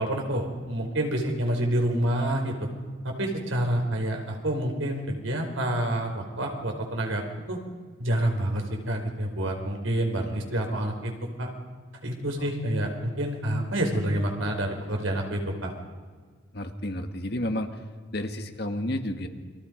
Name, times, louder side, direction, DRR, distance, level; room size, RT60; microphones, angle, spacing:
voice 1, 0.0-2.7 3.0-7.2 7.5-7.6 8.0-11.1 11.4-11.5 12.0-15.7, right 1 dB, 85° right, 2 dB, 4.7 m, -28 dB
voice 2, 16.5-17.8 18.1-19.3, left 1 dB, 55° left, 6 dB, 1.9 m, -31 dB
29.5 x 24.0 x 5.3 m, 1.5 s
head